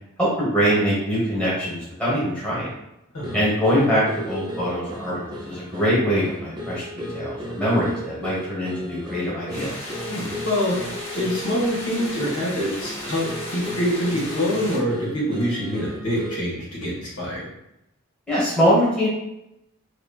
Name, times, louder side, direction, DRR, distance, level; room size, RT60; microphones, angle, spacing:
voice 1, 0.2-2.7 3.3-9.7 18.3-19.1, equal, 5° left, -9 dB, 1.1 m, -23 dB
sound 1, 3.2-16.5, equal, 20° right, 0.4 m, -35 dB
sound 2, 9.5-14.8, left 1 dB, 30° left, 1.1 m, -35 dB
voice 2, 10.1-10.8 11.2-13.3 13.5-17.5, equal, 90° left, -5 dB, 1.3 m, -25 dB
3.0 x 2.9 x 2.3 m, 0.87 s
head